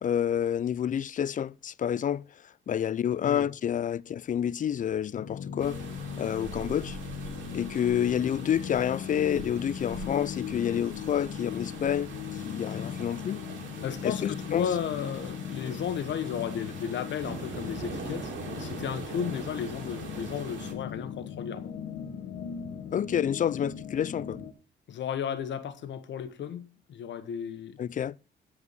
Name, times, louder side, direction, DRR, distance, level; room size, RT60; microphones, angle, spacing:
voice 1, 0.0-2.2 2.7-5.8 6.2-7.0 7.5-12.1 12.4-13.4 14.0-14.7 22.9-24.4 27.8-28.2, left 9 dB, 40° left, 0.4 m, -29 dB
sound 1, 5.1-24.5, left 8 dB, 85° left, 1.4 m, -39 dB
sound 2, 5.6-20.7, right 4 dB, 70° right, 3.2 m, -43 dB
voice 2, 13.8-21.7 24.9-27.8, left 8 dB, 65° left, 1.3 m, -34 dB
14.0 x 4.8 x 6.8 m
cardioid pair, 90°, 20 cm